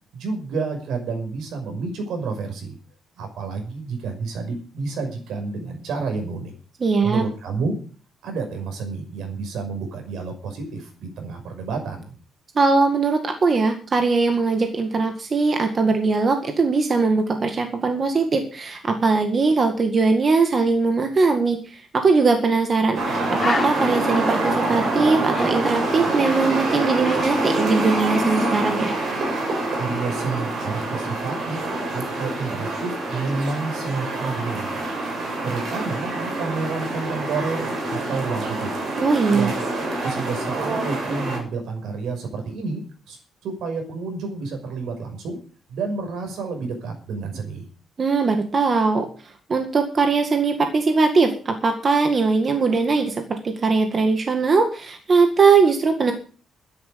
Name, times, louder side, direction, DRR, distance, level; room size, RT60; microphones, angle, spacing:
voice 1, 0.1-2.7 3.2-6.5 7.0-7.8 8.2-12.1 29.8-34.9 35.4-38.7 39.3-39.7 40.0-45.4 45.7-47.7, right 4 dB, 70° right, 4 dB, 5.8 m, -30 dB
voice 2, 6.8-7.2 12.6-28.9 39.0-39.5 48.0-49.1 49.5-56.1, right 4 dB, 30° right, 5 dB, 1.9 m, -20 dB
Bird, 22.5-22.7 23.0-23.1 23.4-26.5 26.8-28.5 28.8-29.1, left 4 dB, 25° left, 1.3 m, -34 dB
sound 1, 22.9-41.4, right 2 dB, 50° right, 6.9 m, -26 dB
13.0 x 10.5 x 6.9 m, 0.40 s
cardioid pair, 155°, 0 cm